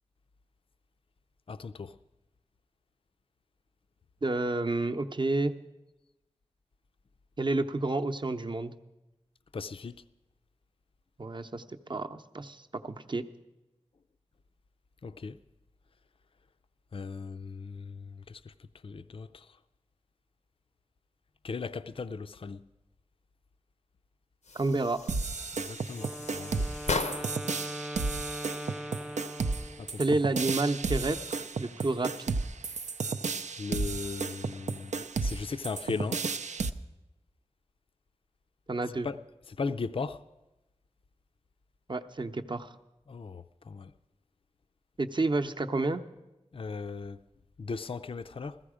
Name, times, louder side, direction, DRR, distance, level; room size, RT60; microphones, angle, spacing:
voice 1, 1.5-2.0 9.5-9.9 15.0-15.4 16.9-18.5 18.8-19.6 21.4-22.7 25.5-26.7 29.8-30.0 33.6-36.2 39.0-39.2 39.5-40.2 43.1-43.9 46.5-47.2 47.6-48.6, left 4 dB, 50° left, 0.4 m, -37 dB
voice 2, 4.2-5.5 7.4-8.7 11.2-11.6 11.9-13.2 24.5-25.1 30.0-32.4 38.7-39.1 41.9-42.7 45.0-46.0, right 2 dB, 40° right, 0.7 m, -30 dB
sound 1, 24.4-27.5, left 3 dB, 85° left, 0.7 m, -37 dB
sound 2, 25.1-36.7, right 4 dB, 85° right, 0.5 m, -33 dB
Wind instrument woodwind instrument, 25.9-30.0, equal, 5° right, 0.4 m, -40 dB
15.0 x 14.5 x 5.0 m
wide cardioid pair, 55°, 12 cm